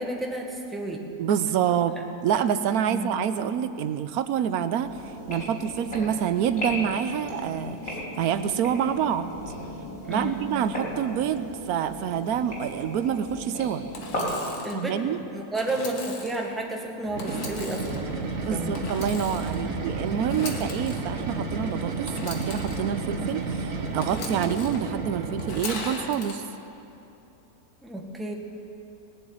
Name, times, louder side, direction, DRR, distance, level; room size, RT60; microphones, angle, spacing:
voice 1, 0.0-1.1 1.7-1.8 2.9-3.2 10.0-10.4 14.6-18.8 19.6-19.8 27.8-28.3, right 1 dB, ahead, 0 dB, 1.3 m, -32 dB
voice 2, 1.2-2.0 2.2-9.3 10.1-13.8 14.7-15.2 18.4-26.4, right 9 dB, 75° right, 12 dB, 1.1 m, -27 dB
sound 1, 4.8-14.3, equal, 65° left, 4.6 m, -36 dB
Engine / Sawing, 13.9-14.8 15.6-16.4 17.2-18.0 18.7-19.6 20.2-21.0 22.1-22.8 24.0-24.8 25.4-26.3, left 3 dB, 85° left, 2.0 m, -38 dB
sound 2, 17.0-25.8, right 3 dB, 60° right, 1.7 m, -32 dB
19.5 x 7.2 x 9.4 m, 2.9 s
omnidirectional pair, 1.6 m